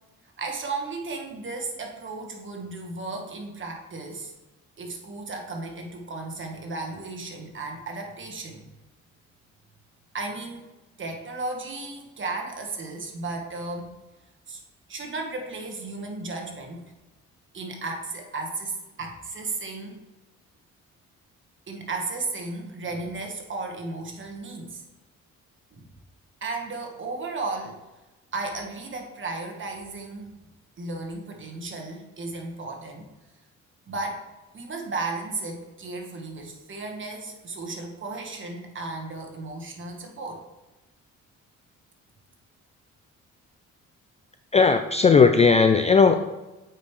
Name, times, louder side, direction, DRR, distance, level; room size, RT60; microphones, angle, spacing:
voice 1, 0.4-4.3 4.8-8.6 10.1-10.6 11.0-13.9 14.5-14.6 14.9-16.8 17.5-20.0 21.7-24.8 25.7-25.9 26.4-27.8 28.3-30.3 30.8-33.1 33.9-34.2 34.5-40.4, right 3 dB, 40° right, 2 dB, 1.5 m, -34 dB
voice 2, 44.5-46.2, left 5 dB, 25° left, 8 dB, 0.3 m, -17 dB
8.0 x 5.1 x 3.2 m, 1.1 s
cardioid pair, 90°, 30 cm